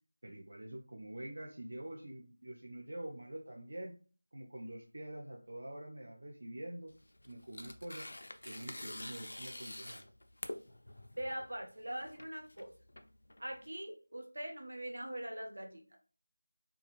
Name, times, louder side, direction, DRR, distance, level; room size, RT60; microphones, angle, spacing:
voice 1, 0.2-3.9 4.3-6.9 7.3-8.1 8.4-10.0, right 1 dB, 45° right, 0 dB, 0.4 m, -46 dB
Tearing, 6.9-13.7, left 1 dB, 55° left, 0.3 m, -47 dB
voice 2, 11.2-12.7 13.4-16.0, right 1 dB, 70° right, 2 dB, 0.8 m, -42 dB
2.4 x 2.2 x 2.9 m, 0.38 s
figure-of-eight pair, 180°, 0 cm